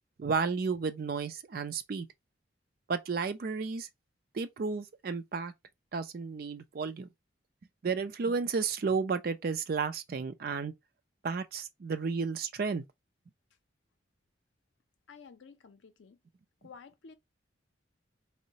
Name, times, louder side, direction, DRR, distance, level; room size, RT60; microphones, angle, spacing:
voice 1, 0.2-2.1 2.9-3.9 4.3-5.5 5.9-7.1 7.8-10.7 11.2-12.8, right 5 dB, 50° right, 0.4 m, -32 dB
voice 2, 15.1-16.2 16.6-17.1, left 5 dB, 75° left, 0.5 m, -52 dB
3.8 x 2.1 x 2.7 m
head